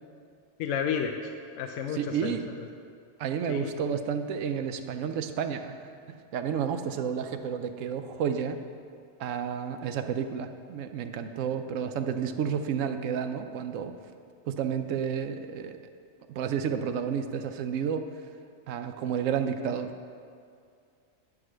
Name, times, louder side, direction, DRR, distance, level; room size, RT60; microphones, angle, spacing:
voice 1, 0.6-2.4 3.5-3.7, left 7 dB, 75° left, 3 dB, 0.9 m, -32 dB
voice 2, 1.9-2.5 3.2-5.7 6.1-8.6 9.2-13.9 14.5-15.8 16.3-18.1 18.7-19.9, right 7 dB, 75° right, 8 dB, 0.9 m, -31 dB
9.7 x 4.9 x 6.2 m, 2.3 s
omnidirectional pair, 1.3 m